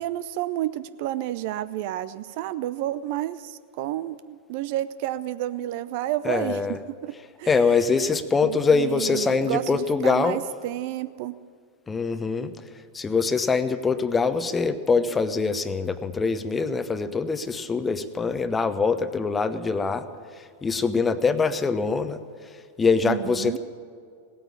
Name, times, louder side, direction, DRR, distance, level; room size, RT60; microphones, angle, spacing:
voice 1, 0.0-6.6 7.0-7.6 8.4-11.3 23.0-23.6, right 14 dB, 50° right, 15 dB, 0.5 m, -30 dB
voice 2, 6.2-6.8 7.5-10.4 11.9-12.5 12.9-20.1 20.3-22.2 22.8-23.6, left 4 dB, 15° left, 12 dB, 0.8 m, -23 dB
17.5 x 9.1 x 8.5 m, 2.2 s
figure-of-eight pair, 90°, 0 cm